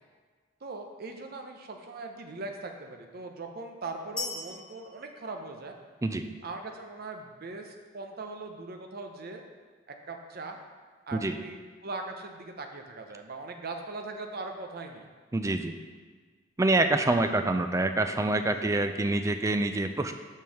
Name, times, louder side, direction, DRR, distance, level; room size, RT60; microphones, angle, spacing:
voice 1, 0.6-5.8 6.4-9.4 9.9-10.6 11.1-15.1 18.5-19.2, right 3 dB, 55° right, 4 dB, 0.7 m, -40 dB
sound 1, 4.2-6.1, left 3 dB, 5° left, 1.0 m, -40 dB
voice 2, 15.3-15.8 16.6-20.1, right 2 dB, 15° right, 8 dB, 0.3 m, -26 dB
5.4 x 4.5 x 6.2 m, 1.5 s
head